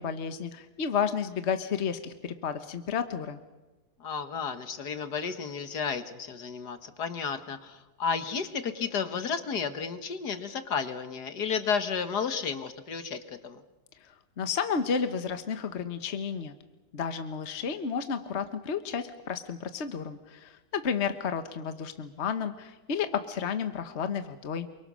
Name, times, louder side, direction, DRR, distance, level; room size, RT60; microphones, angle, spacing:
voice 1, 0.0-3.4 14.4-16.5 16.9-24.7, left 6 dB, 45° left, 9 dB, 1.4 m, -32 dB
voice 2, 4.0-13.6, left 6 dB, 70° left, 9 dB, 2.0 m, -32 dB
28.0 x 24.0 x 6.3 m, 1.1 s
omnidirectional pair, 1.8 m